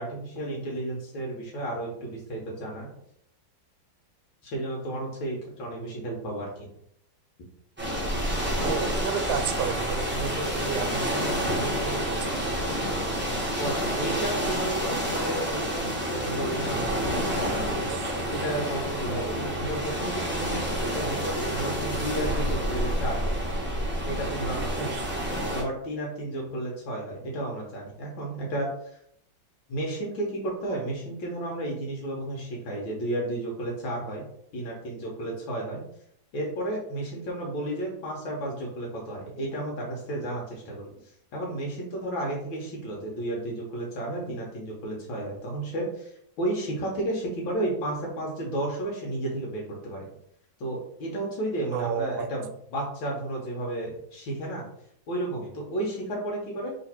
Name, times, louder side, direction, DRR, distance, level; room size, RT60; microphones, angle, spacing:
voice 1, 0.0-2.9 4.4-6.7 13.6-17.8 18.3-23.4 24.0-25.0 25.5-29.0 29.7-34.3 34.5-35.8 36.3-40.9 41.3-50.0 50.6-54.7 55.1-56.7, right 1 dB, 80° left, -2 dB, 1.8 m, -32 dB
sound 1, 7.8-25.6, equal, 10° right, 0.7 m, -29 dB
voice 2, 8.6-12.5 17.9-18.4 24.8-25.0 39.8-39.9 51.7-52.3, right 6 dB, 80° right, 7 dB, 1.4 m, -33 dB
3.4 x 3.1 x 4.3 m, 0.71 s
omnidirectional pair, 2.1 m